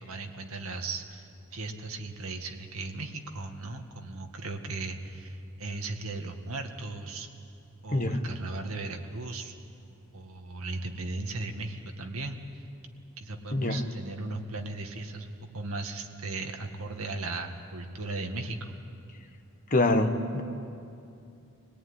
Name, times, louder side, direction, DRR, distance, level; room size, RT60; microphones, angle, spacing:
voice 1, 0.0-7.3 7.8-9.6 10.1-12.6 13.2-18.8, right 3 dB, 75° right, 4 dB, 1.9 m, -37 dB
voice 2, 19.7-20.4, left 2 dB, 35° left, 6 dB, 1.4 m, -25 dB
25.0 x 18.0 x 9.8 m, 2.5 s
head